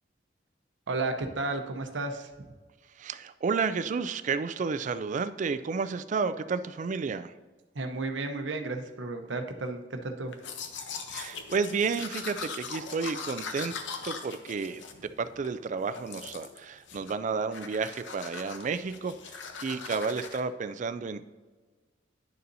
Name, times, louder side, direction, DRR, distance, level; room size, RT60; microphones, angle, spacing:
voice 1, 0.9-2.5 7.7-10.3, right 3 dB, 85° right, 5 dB, 0.8 m, -33 dB
voice 2, 3.0-7.3 11.1-13.7 14.0-21.3, right 5 dB, 45° right, 12 dB, 0.4 m, -31 dB
Domestic sounds home sounds, 10.3-15.5 15.9-16.6 16.9-17.2 17.5-20.4, left 5 dB, 85° left, 0.8 m, -40 dB
10.5 x 6.7 x 2.7 m, 1.3 s
head